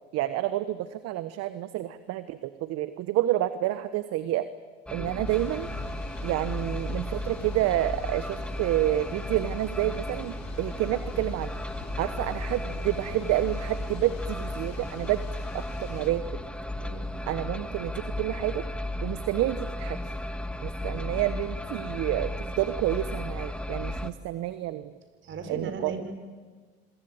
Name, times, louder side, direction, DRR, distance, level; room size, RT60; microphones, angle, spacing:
voice 1, 0.1-4.5 4.9-5.7 6.2-11.5 12.0-15.2 15.5-16.2 17.2-18.6 19.0-20.1 20.6-24.9 25.5-25.9, right 14 dB, 60° right, 13 dB, 1.3 m, -29 dB
sound 1, 4.9-24.1, left 1 dB, 5° left, 1.7 m, -34 dB
Thunder / Rain, 5.2-16.1, left 6 dB, 85° left, 5.6 m, -46 dB
voice 2, 16.8-17.1 25.2-26.1, right 4 dB, 40° right, 9 dB, 5.1 m, -37 dB
26.5 x 24.0 x 9.0 m, 1.5 s
supercardioid pair, 95°, 29 cm